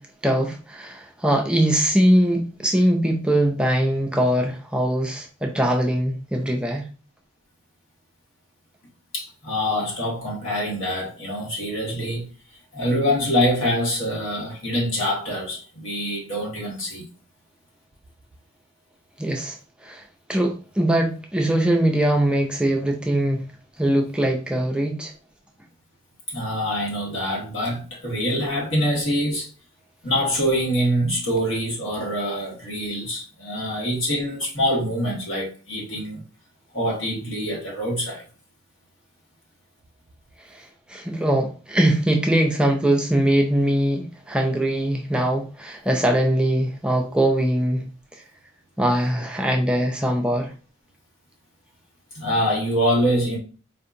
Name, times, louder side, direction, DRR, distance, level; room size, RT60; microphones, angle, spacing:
voice 1, 0.2-6.8 19.2-19.6 19.8-20.0 20.3-23.4 23.8-25.1 40.5-47.9 48.1-48.2 48.8-50.5, right 1 dB, 5° right, 0.3 m, -22 dB
voice 2, 9.1-12.2 12.7-17.1 26.3-29.5 30.0-36.2 36.7-38.2 52.1-53.4, equal, 80° left, 1.7 m, -25 dB
4.3 x 2.7 x 2.5 m
head